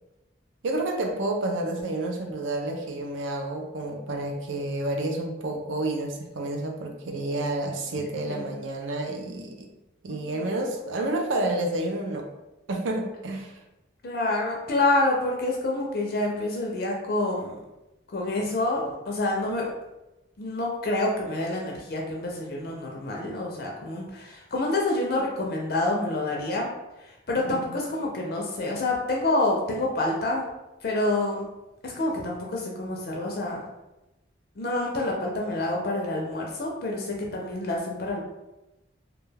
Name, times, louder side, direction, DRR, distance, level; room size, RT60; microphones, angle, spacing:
voice 1, 0.6-9.7 10.0-12.3 12.7-13.6 27.4-27.7, right 2 dB, 80° right, 2 dB, 0.5 m, -30 dB
voice 2, 8.3-8.6 10.1-10.6 14.0-17.6 18.1-19.7 20.4-26.7 27.0-30.5 30.8-31.5 31.8-33.6 34.6-38.2, left 2 dB, 50° left, -1 dB, 0.4 m, -27 dB
2.3 x 2.2 x 3.2 m, 0.98 s
head